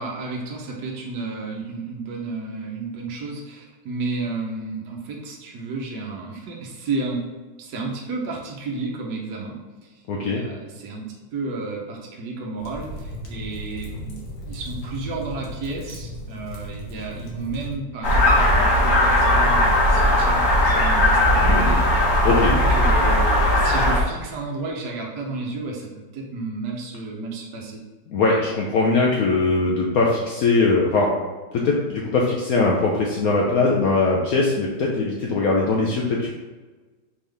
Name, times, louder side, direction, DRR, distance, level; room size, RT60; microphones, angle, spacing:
voice 1, 0.0-7.2 7.6-9.5 9.8-10.0 10.3-27.8, right 3 dB, 70° right, -1 dB, 1.3 m, -32 dB
voice 2, 10.1-10.4 21.4-21.8 22.2-22.5 28.1-31.2 31.5-36.3, left 3 dB, 65° left, -2 dB, 0.9 m, -21 dB
sound 1, 12.6-17.8, left 1 dB, 85° left, 1.7 m, -36 dB
sound 2, 18.0-24.0, left 1 dB, 50° left, 1.3 m, -18 dB
4.4 x 3.6 x 3.3 m, 1.3 s
omnidirectional pair, 2.0 m